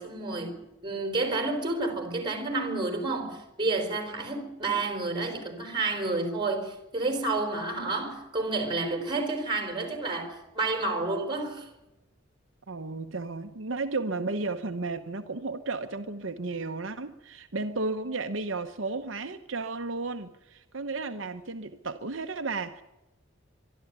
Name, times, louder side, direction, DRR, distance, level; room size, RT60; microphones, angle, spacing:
voice 1, 0.0-11.7, right 3 dB, 20° right, 4.3 m, -30 dB
voice 2, 12.7-22.8, right 3 dB, 70° right, 1.0 m, -33 dB
23.5 x 12.0 x 9.5 m
head